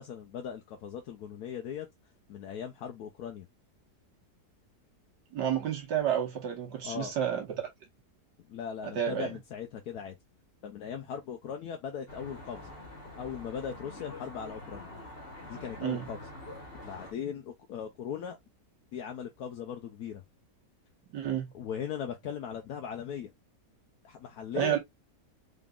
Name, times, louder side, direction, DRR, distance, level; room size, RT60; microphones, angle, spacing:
voice 1, 0.0-1.9 2.3-3.5 6.8-7.1 8.5-10.2 10.6-12.7 13.2-14.9 15.5-16.3 16.8-18.4 18.9-20.2 21.5-23.3 24.0-24.8, left 8 dB, 70° left, 1.1 m, -39 dB
voice 2, 5.3-7.7 8.9-9.3 15.8-16.1 21.1-21.5 24.5-24.8, right 9 dB, 80° right, 1.6 m, -30 dB
Traffic noise roadway noise, 12.1-17.1, left 1 dB, 35° left, 1.6 m, -46 dB
3.9 x 3.6 x 2.3 m
omnidirectional pair, 1.8 m